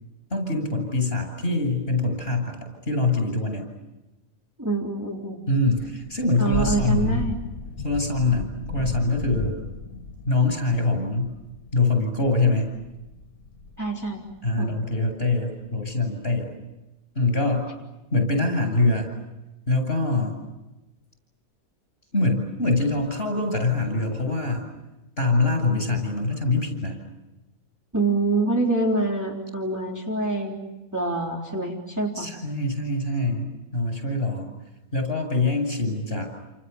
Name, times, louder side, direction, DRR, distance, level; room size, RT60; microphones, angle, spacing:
voice 1, 0.3-2.6 2.9-3.6 5.5-7.3 7.8-9.6 10.2-11.3 11.7-12.8 14.4-16.5 17.1-17.7 18.1-19.1 19.7-20.4 22.1-24.7 25.2-27.0 32.1-34.5 34.9-36.3, left 2 dB, 40° left, 5 dB, 8.2 m, -24 dB
voice 2, 4.6-5.4 6.4-7.4 13.8-14.2 14.6-14.7 27.9-30.6 30.9-32.3, right 3 dB, 10° right, -2 dB, 3.7 m, -25 dB
Thunder / Rain, 5.7-15.1, left 3 dB, 90° left, 2.1 m, -34 dB
29.5 x 28.5 x 7.1 m, 1.0 s
omnidirectional pair, 1.5 m